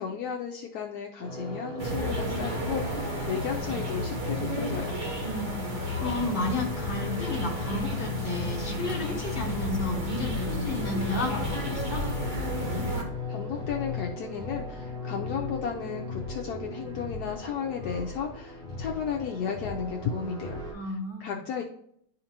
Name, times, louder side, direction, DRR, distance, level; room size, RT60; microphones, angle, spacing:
voice 1, 0.0-5.0 13.3-20.6 20.9-21.0 21.2-21.6, left 7 dB, 75° left, 1 dB, 1.1 m, -34 dB
sound 1, 1.2-20.7, left 3 dB, 60° right, 2.8 m, -37 dB
sound 2, 1.8-13.0, equal, 30° right, 1.2 m, -32 dB
voice 2, 5.2-5.7 6.0-12.0 20.7-21.4, left 2 dB, 35° left, -1 dB, 1.6 m, -32 dB
11.0 x 3.9 x 2.9 m, 0.71 s
omnidirectional pair, 1.8 m